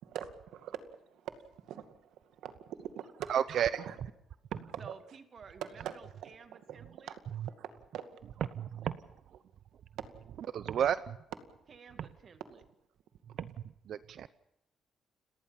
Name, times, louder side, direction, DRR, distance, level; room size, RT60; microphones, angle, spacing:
voice 1, 0.0-3.3 3.6-4.0 4.7-4.8 5.6-5.9 6.2-7.2 7.5-8.1, right 10 dB, 85° right, 2.2 m, -44 dB
voice 2, 3.3-3.7 8.6-9.0 10.5-11.2 12.0-12.1 13.4-13.5 13.9-14.3, right 9 dB, 65° right, 0.8 m, -31 dB
voice 3, 4.8-7.2 11.7-12.6, right 6 dB, 50° right, 2.4 m, -53 dB
30.0 x 19.0 x 5.9 m
cardioid pair, 90°, 0 cm